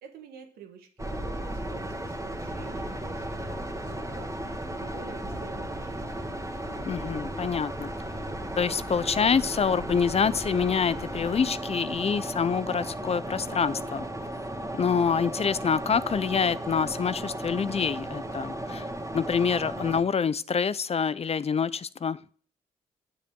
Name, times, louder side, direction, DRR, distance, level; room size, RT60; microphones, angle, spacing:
voice 1, 0.0-6.2, right 6 dB, 85° right, 1.6 m, -49 dB
sound 1, 1.0-20.0, right 1 dB, 20° right, 2.1 m, -35 dB
voice 2, 6.9-7.9 8.6-14.1 14.8-18.9 19.1-22.2, left 6 dB, 40° left, 0.5 m, -26 dB
8.5 x 7.4 x 3.7 m
supercardioid pair, 45°, 16 cm